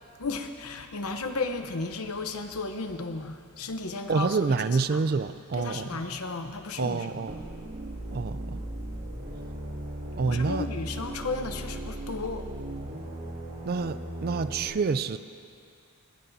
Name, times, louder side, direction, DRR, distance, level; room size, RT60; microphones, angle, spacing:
voice 1, 0.2-4.6 4.9-5.0 5.5-7.2 10.2-12.5, left 3 dB, 80° left, 7 dB, 0.9 m, -34 dB
voice 2, 4.1-5.9 6.8-7.4 8.1-8.6 10.2-10.7 13.7-15.2, right 4 dB, 45° right, 13 dB, 0.4 m, -27 dB
sound 1, 7.3-14.6, right 1 dB, 60° right, 2.4 m, -37 dB
20.5 x 16.0 x 2.7 m, 2.4 s
head